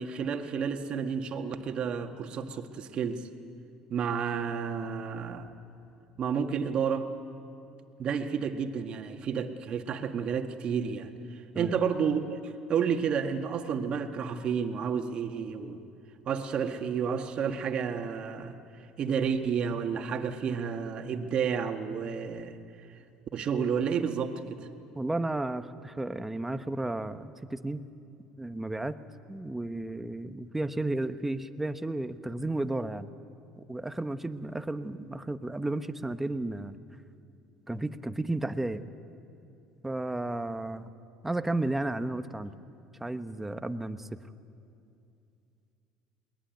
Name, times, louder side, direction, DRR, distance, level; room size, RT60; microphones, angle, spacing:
voice 1, 0.0-3.3 3.9-5.5 6.2-7.1 8.0-15.8 16.3-18.6 19.0-22.6 23.3-24.7, right 6 dB, 50° right, 6 dB, 1.9 m, -31 dB
voice 2, 24.9-27.8 28.4-28.9 29.3-33.1 33.6-36.8 37.7-38.8 39.8-40.9 41.2-42.5 43.0-44.1, right 2 dB, 10° right, 10 dB, 1.1 m, -33 dB
21.5 x 20.5 x 9.3 m, 2.6 s
supercardioid pair, 80°, 2 cm